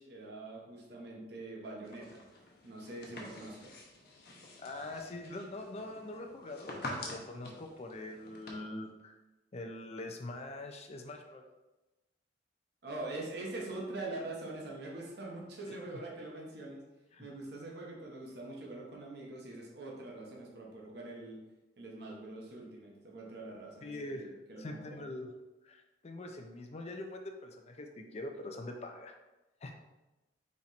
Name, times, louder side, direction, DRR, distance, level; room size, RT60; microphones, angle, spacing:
voice 1, 0.0-2.2 2.6-3.8 12.8-16.8 17.2-21.4 21.8-25.0, right 2 dB, 65° right, -2 dB, 1.0 m, -44 dB
sound 1, 1.8-8.5, left 1 dB, 60° left, 0.9 m, -47 dB
voice 2, 4.6-9.1 9.5-11.4 15.7-16.0 17.1-17.3 23.8-24.3 24.6-25.3 25.6-29.2 29.6-29.7, left 2 dB, 35° left, 4 dB, 0.5 m, -43 dB
4.2 x 3.1 x 4.1 m, 1.1 s
head